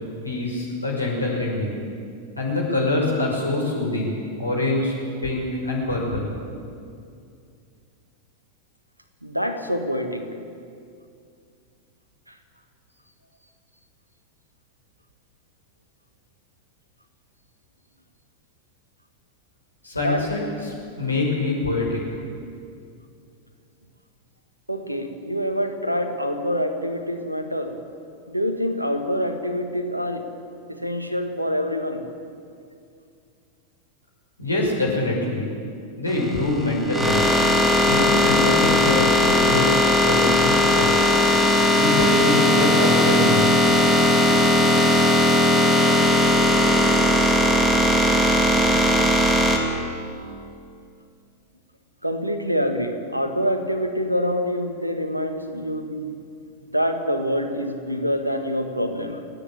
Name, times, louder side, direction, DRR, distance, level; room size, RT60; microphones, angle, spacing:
voice 1, 0.2-1.8 2.4-4.9 5.2-6.3 19.8-20.4 21.0-22.0 34.4-35.4 36.0-37.3 37.8-39.7 40.0-41.1 41.8-43.5, left 2 dB, 85° left, -2 dB, 5.9 m, -24 dB
voice 2, 9.2-10.3 20.0-20.2 24.7-27.8 28.3-30.3 30.7-32.0 52.0-56.1 56.7-59.2, equal, 90° right, 7 dB, 1.8 m, -26 dB
sound 1, 36.1-49.6, left 1 dB, 10° right, 2.8 m, -18 dB
28.5 x 10.0 x 8.8 m, 2.4 s
figure-of-eight pair, 90°, 0 cm